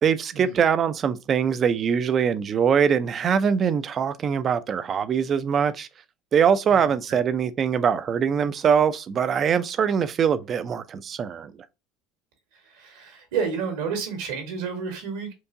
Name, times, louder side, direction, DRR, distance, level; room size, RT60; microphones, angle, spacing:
voice 1, 0.0-5.9 6.3-11.5, right 7 dB, 40° right, 0.4 m, -22 dB
voice 2, 6.7-7.2 12.5-15.3, right 6 dB, 85° right, 1.7 m, -31 dB
4.6 x 2.6 x 2.5 m
supercardioid pair, 105°, 0 cm